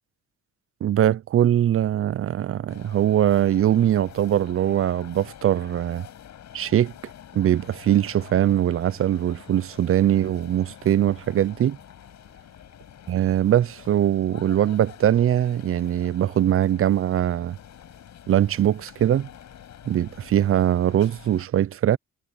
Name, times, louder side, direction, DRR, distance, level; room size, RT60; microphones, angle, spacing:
voice 1, 0.8-6.1 6.5-6.9 7.3-11.8 13.1-17.6 18.3-19.3 19.9-22.0, right 11 dB, 45° right, 0.5 m, -21 dB
sound 1, 2.7-21.5, left 10 dB, 65° left, 5.6 m, -46 dB
cardioid pair, 90°, 30 cm